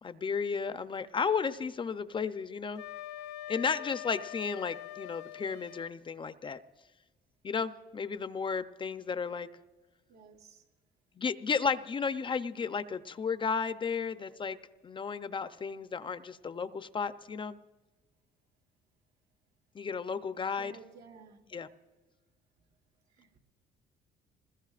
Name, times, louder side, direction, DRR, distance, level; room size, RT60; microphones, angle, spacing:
voice 1, 0.0-2.8 3.5-6.6 7.4-9.5 11.2-14.6 14.8-17.6 19.7-20.7 21.5-21.7, left 5 dB, 30° left, 12 dB, 0.6 m, -33 dB
Wind instrument woodwind instrument, 2.8-5.9, left 14 dB, 85° left, 0.5 m, -43 dB
voice 2, 10.1-10.6 20.6-21.4 23.2-23.3, right 5 dB, 75° right, 2 dB, 2.5 m, -53 dB
26.0 x 20.5 x 2.5 m, 1.2 s
cardioid pair, 110°, 17 cm